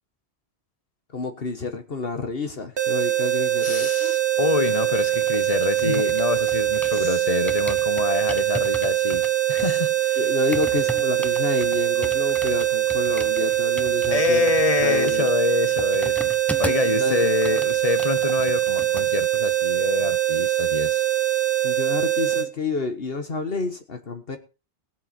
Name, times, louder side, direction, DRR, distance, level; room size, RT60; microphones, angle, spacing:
voice 1, 1.1-4.1 5.8-6.0 6.9-7.2 9.6-9.8 10.2-14.5 14.8-15.3 16.8-17.3 21.6-24.4, left 4 dB, 60° left, 1.6 m, -29 dB
sound 1, 2.8-22.5, right 13 dB, 75° right, 1.7 m, -23 dB
voice 2, 3.6-10.2 14.1-16.3 16.6-21.0, left 5 dB, 40° left, 0.9 m, -26 dB
sound 2, 4.8-7.1 7.5-17.0 17.2-19.1 19.4-19.6, equal, ahead, 0.9 m, -38 dB
22.0 x 7.7 x 4.3 m
omnidirectional pair, 1.1 m